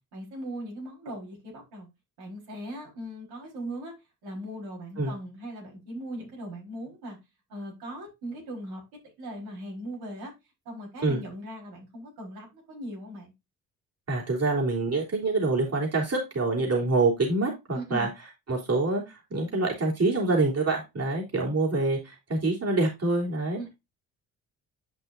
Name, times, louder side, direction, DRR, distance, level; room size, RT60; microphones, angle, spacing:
voice 1, 0.1-1.9 2.2-3.9 4.2-7.2 7.5-8.8 9.2-10.3 10.6-13.3 17.7-18.1 23.5-23.7, right 1 dB, 70° right, 4.4 m, -39 dB
voice 2, 14.1-18.1 18.5-23.6, right 3 dB, 40° right, 3.7 m, -26 dB
10.5 x 5.6 x 2.6 m
hypercardioid pair, 50°, 40 cm